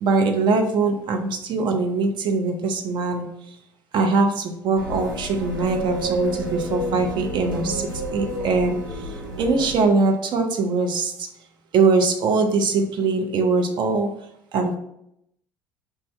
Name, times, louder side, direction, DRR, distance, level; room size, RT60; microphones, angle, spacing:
voice 1, 0.0-3.3 3.9-8.8 9.4-11.1 11.7-14.1 14.5-14.8, right 3 dB, 45° right, 4 dB, 0.6 m, -22 dB
sound 1, 4.8-9.8, right 1 dB, 85° right, 0.5 m, -30 dB
4.6 x 2.7 x 3.1 m, 0.77 s
figure-of-eight pair, 60°, 11 cm